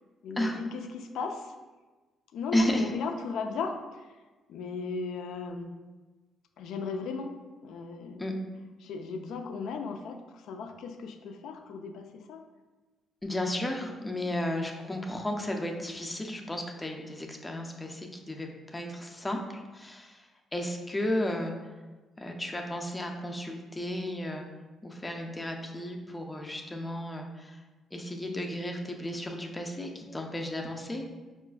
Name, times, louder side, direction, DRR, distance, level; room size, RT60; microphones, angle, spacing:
voice 1, 0.2-1.5 2.3-4.1 4.5-5.7 6.6-7.3 7.6-8.2 8.8-12.4, left 4 dB, 80° left, 5 dB, 0.3 m, -36 dB
voice 2, 2.5-2.9 8.2-8.3 13.2-21.5 22.2-24.5 24.8-27.6 27.9-31.1, left 1 dB, 15° left, 2 dB, 0.5 m, -33 dB
4.6 x 2.4 x 2.3 m, 1.3 s
cardioid pair, 90°, 0 cm